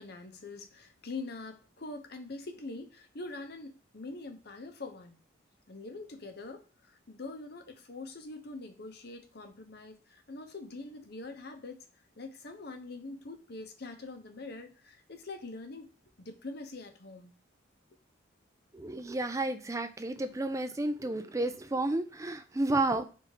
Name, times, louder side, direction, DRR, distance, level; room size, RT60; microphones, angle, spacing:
voice 1, 0.0-5.2 5.7-11.9 12.2-15.9 16.2-17.3, left 3 dB, 50° left, 5 dB, 0.8 m, -44 dB
voice 2, 18.7-23.1, right 2 dB, 15° right, 9 dB, 0.4 m, -31 dB
4.6 x 3.5 x 2.8 m, 0.35 s
head